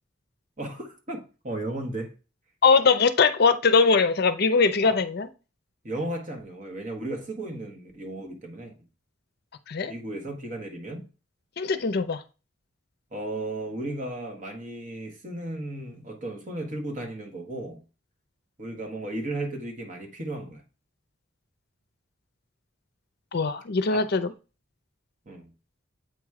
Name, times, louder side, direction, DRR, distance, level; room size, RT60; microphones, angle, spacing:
voice 1, 0.6-2.1 4.8-5.0 5.8-8.7 9.9-11.0 13.1-17.8 18.6-20.6 23.9-24.1 25.2-25.5, right 1 dB, 40° right, 1.5 m, -35 dB
voice 2, 2.6-5.3 9.7-9.9 11.6-12.2 23.3-24.3, left 4 dB, 55° left, 0.5 m, -21 dB
8.1 x 3.1 x 4.8 m
head